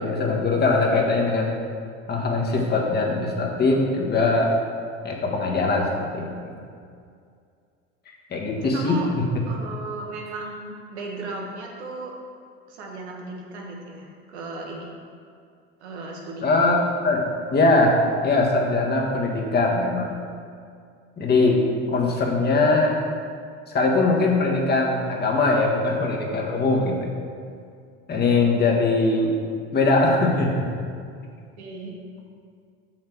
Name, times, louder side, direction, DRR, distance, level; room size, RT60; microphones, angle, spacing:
voice 1, 0.0-1.5 2.1-4.5 5.0-6.5 8.3-9.0 16.4-17.2 17.5-20.1 21.2-21.6 21.9-23.0 23.7-27.1 28.1-29.3 29.7-30.7, left 3 dB, 30° left, -1 dB, 1.4 m, -21 dB
voice 2, 8.7-9.1 9.5-12.1 12.7-14.9 15.8-16.6 21.6-22.0 31.6-32.0, right 3 dB, 90° right, -1 dB, 1.5 m, -36 dB
6.3 x 6.0 x 4.6 m, 2.3 s
supercardioid pair, 95°, 33 cm